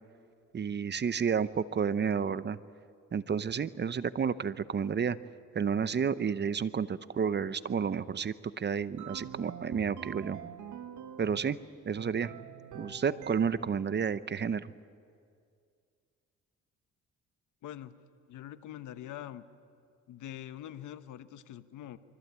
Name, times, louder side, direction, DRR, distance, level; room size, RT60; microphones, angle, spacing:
voice 1, 0.5-2.6 3.1-5.2 5.5-10.4 11.2-11.6 11.8-12.3 12.7-14.7, right 6 dB, 35° right, 15 dB, 0.8 m, -31 dB
sound 1, 9.0-11.6 12.0-13.8, right 8 dB, 70° right, 1.6 m, -45 dB
voice 2, 17.6-17.9 18.3-19.4 20.1-22.0, left 12 dB, 80° left, 11 dB, 1.1 m, -44 dB
24.5 x 24.5 x 8.3 m, 2.3 s
cardioid pair, 90°, 30 cm